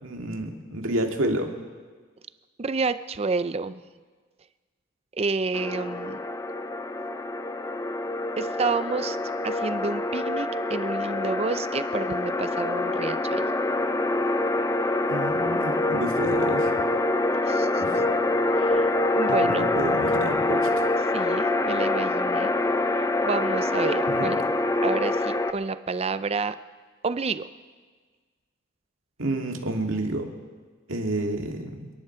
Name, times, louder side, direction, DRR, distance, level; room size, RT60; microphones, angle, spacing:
voice 1, 0.0-1.5 15.1-16.9 17.8-18.0 19.3-20.9 24.1-24.3 29.2-30.3 30.9-31.9, right 1 dB, 80° right, 2 dB, 2.0 m, -30 dB
voice 2, 2.6-3.8 5.1-6.2 8.4-9.2 9.4-13.4 17.5-17.8 18.6-19.7 21.1-22.5 23.2-24.4 24.8-26.6 27.0-27.5, right 4 dB, 30° right, 13 dB, 0.5 m, -29 dB
sound 1, 5.5-25.5, left 2 dB, 15° left, 0.6 m, -25 dB
29.0 x 11.0 x 4.5 m, 1.5 s
head